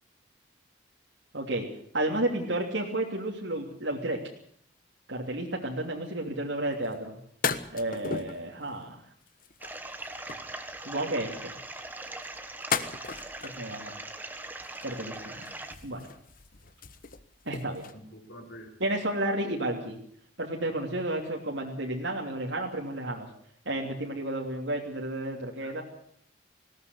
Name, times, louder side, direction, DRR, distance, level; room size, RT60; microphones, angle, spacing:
voice 1, 1.3-1.7 1.9-4.2 5.1-7.2 7.7-9.0 10.8-11.6 13.4-13.9 14.8-15.5 15.8-16.0 17.4-17.9 18.8-20.0 20.4-23.3 23.6-25.8, right 1 dB, 75° right, -1 dB, 3.1 m, -32 dB
sound 1, 6.8-6.9 7.4-8.5 9.3-10.5 12.0-13.8 14.6-15.2 15.4-17.9, left 5 dB, 45° left, 1.3 m, -35 dB
sound 2, 9.6-15.7, right 2 dB, 10° right, 1.6 m, -41 dB
voice 2, 17.9-18.7 25.6-25.8, equal, 65° left, 0 dB, 4.1 m, -48 dB
19.5 x 17.0 x 8.2 m, 0.63 s
head